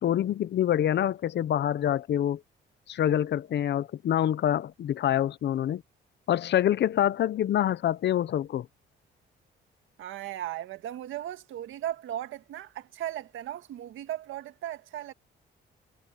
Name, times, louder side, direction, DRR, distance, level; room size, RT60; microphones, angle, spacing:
voice 1, 0.0-2.4 2.9-5.8 6.3-8.7, left 11 dB, 60° left, 0.8 m, -26 dB
voice 2, 10.0-15.1, right 12 dB, 80° right, 1.8 m, -37 dB
cardioid pair, 90°, 20 cm